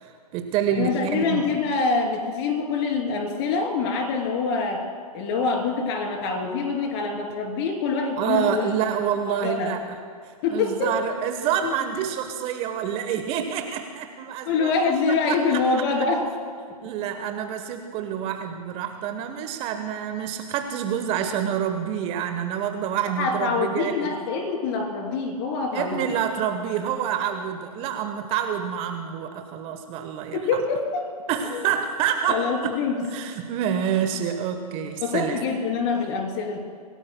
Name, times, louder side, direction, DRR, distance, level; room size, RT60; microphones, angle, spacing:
voice 1, 0.0-1.5 8.2-9.8 10.2-14.7 15.3-15.6 16.6-24.1 25.7-30.4 31.3-32.8 33.1-35.4, right 8 dB, 30° right, 6 dB, 1.0 m, -27 dB
voice 2, 0.7-4.8 5.1-8.7 9.2-9.7 10.4-10.9 11.6-11.8 14.4-16.2 23.2-26.0 30.3-31.0 31.5-31.8 32.3-33.0 35.0-36.6, left 4 dB, 40° left, 2 dB, 3.2 m, -25 dB
26.0 x 17.0 x 2.2 m, 2.2 s
figure-of-eight pair, 120°, 20 cm